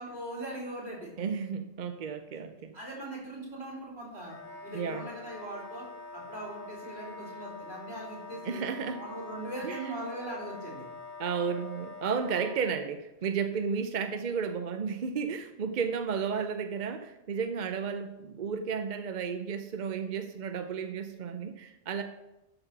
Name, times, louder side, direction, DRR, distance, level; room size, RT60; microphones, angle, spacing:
voice 1, 0.0-1.1 2.7-4.4 4.6-5.9 6.1-8.6 9.0-10.8, right 1 dB, 65° right, -4 dB, 3.9 m, -40 dB
voice 2, 1.2-2.7 4.7-5.1 8.4-9.0 9.6-10.1 11.2-22.0, right 6 dB, 50° right, 7 dB, 0.6 m, -33 dB
Wind instrument woodwind instrument, 4.3-12.6, left 3 dB, 60° left, 2.3 m, -45 dB
12.0 x 4.2 x 5.8 m, 0.94 s
omnidirectional pair, 1.2 m